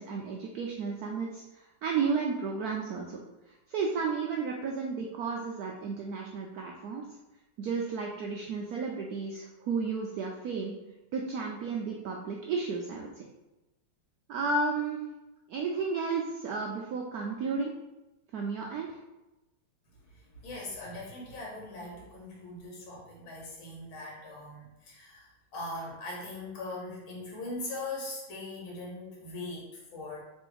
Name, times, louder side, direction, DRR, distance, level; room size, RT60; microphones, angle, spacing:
voice 1, 0.0-7.0 7.6-10.7 11.1-13.3 14.3-15.0 15.5-17.7 18.3-19.0, right 4 dB, 80° right, 0 dB, 0.8 m, -33 dB
voice 2, 20.1-30.2, left 2 dB, 85° left, -3 dB, 1.9 m, -41 dB
3.4 x 3.1 x 4.6 m, 1.0 s
omnidirectional pair, 2.2 m